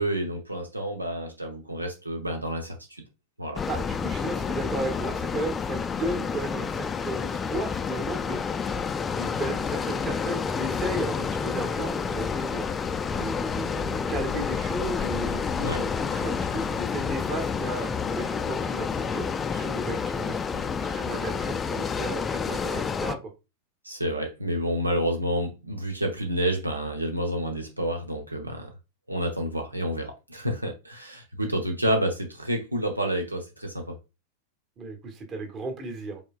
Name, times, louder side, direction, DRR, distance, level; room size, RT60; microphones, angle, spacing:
voice 1, 0.0-3.0 3.4-3.6 15.6-15.8 23.8-28.7 29.1-33.9, right 1 dB, 85° right, 0.7 m, -29 dB
sound 1, 3.6-23.2, left 6 dB, 20° left, 0.4 m, -29 dB
voice 2, 3.7-8.8 9.1-23.2 34.8-36.2, right 2 dB, 30° right, 1.3 m, -35 dB
5.2 x 3.5 x 2.4 m
figure-of-eight pair, 90°, 0 cm